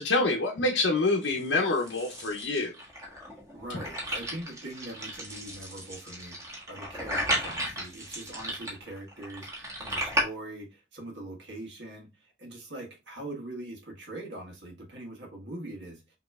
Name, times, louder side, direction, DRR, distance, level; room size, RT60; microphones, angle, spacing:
voice 1, 0.0-2.7, left 2 dB, 80° left, 0.7 m, -26 dB
sound 1, 1.2-10.2, equal, 15° right, 1.4 m, -35 dB
voice 2, 3.5-16.0, right 1 dB, 70° right, 1.5 m, -42 dB
5.9 x 3.0 x 2.4 m
head